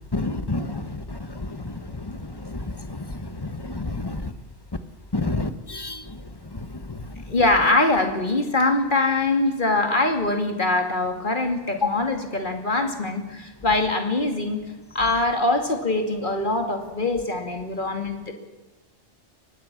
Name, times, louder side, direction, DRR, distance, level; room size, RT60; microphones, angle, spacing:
voice 1, 0.1-0.8 2.6-2.7 3.7-4.2 5.1-6.0 11.8-12.0, left 3 dB, 20° left, 11 dB, 1.1 m, -27 dB
voice 2, 7.3-14.6 14.9-18.3, left 2 dB, 40° left, 5 dB, 2.7 m, -23 dB
24.0 x 19.0 x 6.2 m, 1.1 s
omnidirectional pair, 1.2 m